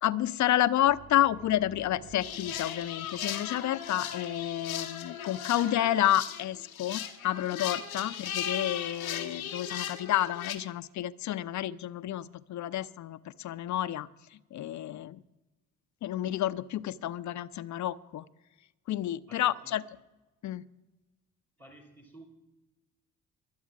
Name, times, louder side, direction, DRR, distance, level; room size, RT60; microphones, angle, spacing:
voice 1, 0.0-14.1 14.5-15.2 16.0-18.2 18.9-19.8 20.4-20.6, left 12 dB, 45° left, 15 dB, 0.7 m, -30 dB
sound 1, 0.8-4.6, right 4 dB, 50° right, 2.8 m, -55 dB
sound 2, 2.2-10.6, left 9 dB, 85° left, 1.0 m, -37 dB
voice 2, 19.3-19.8 21.6-22.2, right 2 dB, 90° right, -4 dB, 2.5 m, -53 dB
23.0 x 8.1 x 6.0 m, 1.1 s
figure-of-eight pair, 40°, 41 cm